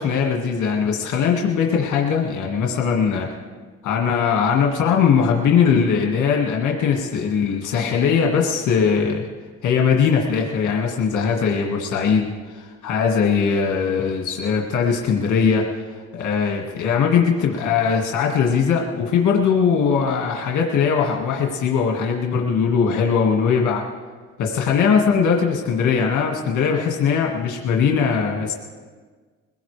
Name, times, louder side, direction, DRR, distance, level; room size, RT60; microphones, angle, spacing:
voice 1, 0.0-3.3 3.8-9.3 9.6-15.6 16.1-23.8 24.4-28.5, left 6 dB, 80° left, 0 dB, 1.9 m, -20 dB
22.0 x 17.0 x 3.3 m, 1.5 s
cardioid pair, 90°, 30 cm